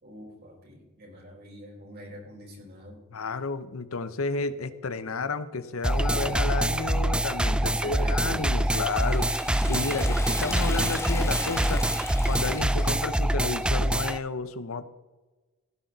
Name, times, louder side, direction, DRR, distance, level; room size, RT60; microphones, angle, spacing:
voice 1, 0.0-3.0 7.5-8.4, equal, 50° right, -1 dB, 4.8 m, -44 dB
voice 2, 3.1-9.3 9.7-11.8 12.2-14.8, left 3 dB, 85° left, 13 dB, 0.8 m, -31 dB
sound 1, 5.8-14.2, right 1 dB, 5° right, 0.3 m, -25 dB
Liquid, 8.6-13.2, left 2 dB, 15° left, 1.3 m, -37 dB
16.5 x 10.5 x 4.0 m, 1.2 s
head